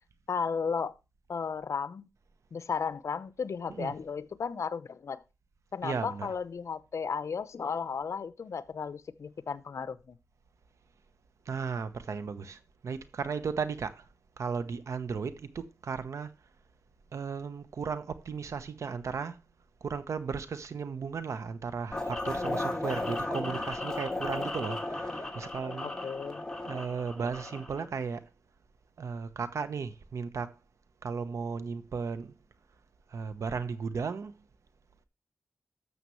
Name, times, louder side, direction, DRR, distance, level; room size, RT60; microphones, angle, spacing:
voice 1, 0.3-0.9 1.3-2.1 2.5-5.2 5.7-10.2 25.8-26.5, left 6 dB, 80° left, 0.8 m, -34 dB
voice 2, 5.8-6.3 11.5-14.0 14.4-16.3 17.1-19.4 19.8-25.9 26.7-28.3 29.0-30.5 31.0-32.3 33.1-34.3, right 5 dB, 90° right, 1.0 m, -35 dB
sound 1, 21.9-27.9, left 2 dB, 10° left, 2.7 m, -35 dB
12.5 x 7.0 x 3.2 m
wide cardioid pair, 80°, 5 cm